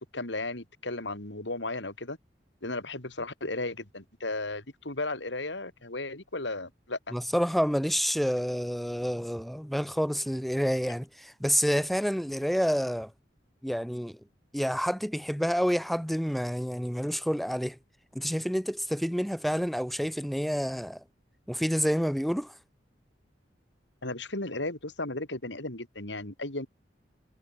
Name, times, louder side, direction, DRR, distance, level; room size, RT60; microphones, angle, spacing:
voice 1, 0.1-2.2 2.6-7.1 24.0-26.7, left 2 dB, 85° left, 4.8 m, -35 dB
voice 2, 7.1-13.1 13.6-14.2 14.5-17.8 18.1-21.0 21.5-22.5, equal, ahead, 2.9 m, -28 dB
head